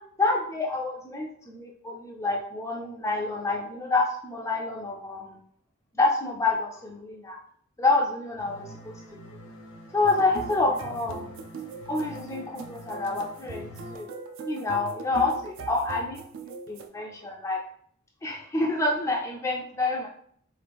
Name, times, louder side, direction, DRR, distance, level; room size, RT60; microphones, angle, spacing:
voice 1, 0.2-5.4 6.0-7.4 7.8-8.9 9.9-11.3 11.9-14.1 14.4-17.6 18.2-20.1, left 3 dB, 15° left, -2 dB, 0.3 m, -28 dB
sound 1, 8.4-14.0, equal, 80° left, 0.6 m, -46 dB
sound 2, 10.0-16.9, right 4 dB, 65° right, 0.4 m, -40 dB
2.9 x 2.5 x 3.4 m, 0.65 s
head